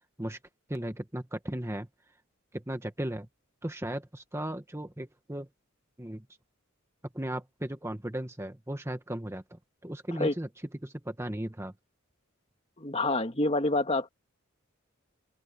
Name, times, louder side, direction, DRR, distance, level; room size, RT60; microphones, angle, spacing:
voice 1, 0.7-1.9 2.5-3.3 3.6-5.5 6.0-6.2 7.1-10.5 10.8-11.7, right 1 dB, 15° right, 1.5 m, -36 dB
voice 2, 12.8-14.1, left 2 dB, 30° left, 2.2 m, -27 dB
open air
head